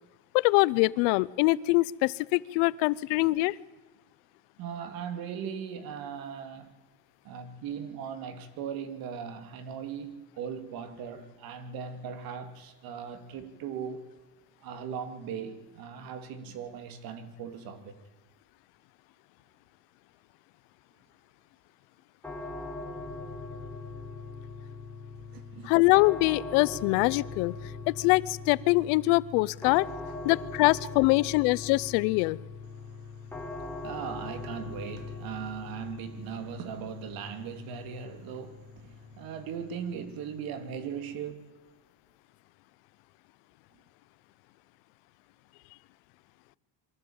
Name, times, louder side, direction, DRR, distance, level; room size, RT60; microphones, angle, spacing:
voice 1, 0.3-3.5 25.6-27.5 27.9-29.9 30.2-32.4, left 22 dB, 85° left, 0.8 m, -24 dB
voice 2, 4.6-6.7 7.2-14.1 14.6-18.0 25.3-25.7 29.9-30.2 30.8-31.1 32.7-41.4, right 7 dB, 60° right, 2.8 m, -39 dB
sound 1, 22.2-41.1, left 3 dB, 5° left, 3.6 m, -41 dB
23.5 x 14.5 x 8.8 m
cardioid pair, 140°, 39 cm